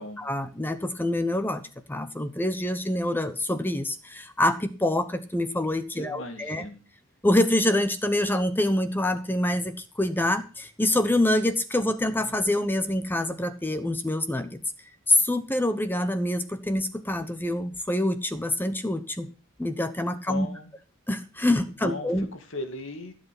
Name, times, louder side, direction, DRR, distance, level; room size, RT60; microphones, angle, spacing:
voice 1, 0.0-1.6 1.9-6.6 7.2-14.6 15.1-19.3 19.6-20.5 21.1-22.3, left 1 dB, 10° left, 10 dB, 1.0 m, -26 dB
voice 2, 5.9-6.8 20.1-20.7 21.8-23.1, left 2 dB, 60° left, 8 dB, 2.4 m, -37 dB
16.0 x 8.2 x 6.0 m, 0.34 s
head